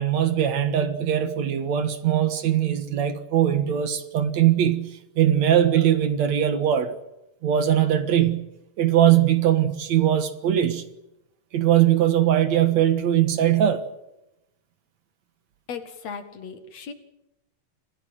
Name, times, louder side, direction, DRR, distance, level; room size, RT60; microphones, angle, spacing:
voice 1, 0.0-7.0 7.4-8.5 8.8-10.8 11.5-13.8, right 11 dB, 65° right, 2.6 m, -21 dB
voice 2, 15.7-16.9, left 6 dB, 60° left, 2.9 m, -36 dB
27.0 x 16.5 x 7.7 m
omnidirectional pair, 3.6 m